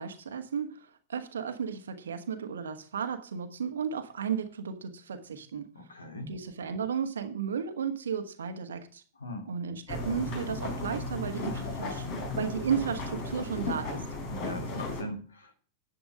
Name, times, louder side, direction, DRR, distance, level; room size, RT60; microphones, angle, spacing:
voice 1, 0.0-5.7 6.3-9.0 9.5-12.1 12.3-14.0, right 7 dB, 65° right, 7 dB, 1.4 m, -34 dB
voice 2, 5.7-6.3 9.2-9.5 14.3-15.5, left 1 dB, 75° left, 6 dB, 2.8 m, -40 dB
sound 1, 9.9-15.0, left 2 dB, 45° left, 3.9 m, -35 dB
11.0 x 7.7 x 5.2 m, 0.40 s
figure-of-eight pair, 90°, 0 cm